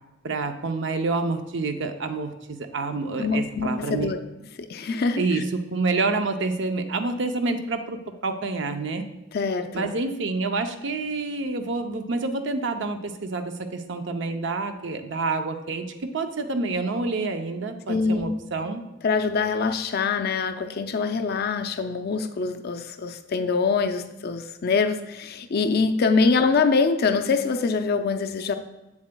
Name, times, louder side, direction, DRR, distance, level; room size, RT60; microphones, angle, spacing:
voice 1, 0.2-4.1 5.2-9.1 9.7-18.8, right 3 dB, 65° right, 7 dB, 0.6 m, -28 dB
voice 2, 3.2-4.2 4.6-5.4 9.3-9.9 17.9-18.4 19.0-28.5, left 4 dB, 50° left, 8 dB, 0.4 m, -24 dB
7.6 x 7.0 x 2.2 m, 1.0 s
head